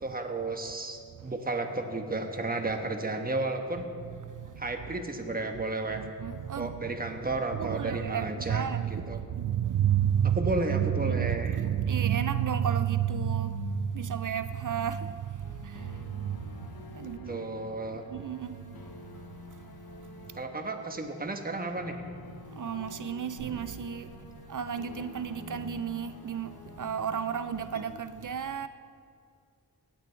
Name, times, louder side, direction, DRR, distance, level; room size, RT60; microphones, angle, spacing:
voice 1, 0.0-3.9 4.6-6.0 6.6-9.2 10.2-11.6 17.3-18.0 20.3-22.0, right 2 dB, 25° right, 1.2 m, -33 dB
voice 2, 5.9-6.7 7.5-16.5 17.0-17.4 18.1-18.6 22.6-24.1 24.5-26.5 26.8-28.7, right 9 dB, 55° right, 0.5 m, -31 dB
sound 1, 15.4-27.8, left 5 dB, 70° left, 0.9 m, -48 dB
17.0 x 9.3 x 4.5 m
wide cardioid pair, 90°, 37 cm